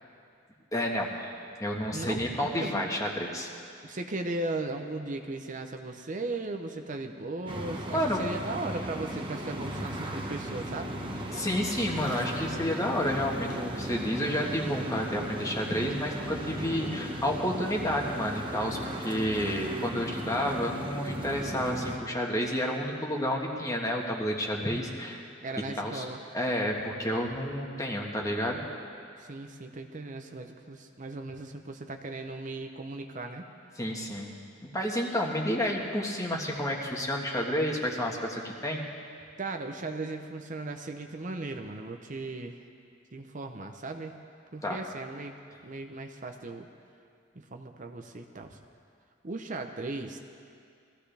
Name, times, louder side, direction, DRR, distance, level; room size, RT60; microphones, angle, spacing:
voice 1, 0.7-1.3 1.6-3.5 7.9-8.2 11.3-25.2 25.5-26.0 26.3-28.7 33.8-34.3 34.6-38.8 44.6-44.8, equal, 20° left, -1 dB, 1.6 m, -30 dB
voice 2, 1.9-2.8 3.8-10.9 25.4-26.2 27.6-28.0 29.2-33.4 39.4-42.6 43.1-44.2 44.5-45.3 45.6-46.7 47.3-48.6 49.2-50.2, right 2 dB, 45° right, 4 dB, 0.8 m, -37 dB
sound 1, 7.5-22.0, equal, 25° right, 1.3 m, -36 dB
22.0 x 15.0 x 3.4 m, 2.3 s
head